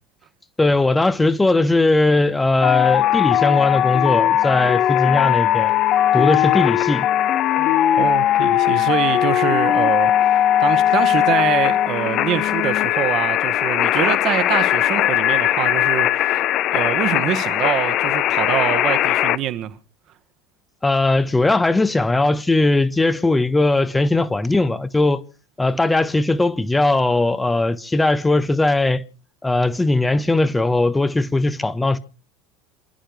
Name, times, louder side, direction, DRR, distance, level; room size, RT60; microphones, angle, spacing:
voice 1, 0.6-5.8 6.1-7.1 20.8-25.2 25.6-29.0 29.4-32.0, left 2 dB, 10° left, 1.0 m, -19 dB
sound 1, 2.6-19.4, left 12 dB, 45° left, 0.7 m, -19 dB
voice 2, 8.0-16.4 16.7-19.8, right 11 dB, 45° right, 1.4 m, -25 dB
28.0 x 12.0 x 3.3 m
figure-of-eight pair, 75°, 0 cm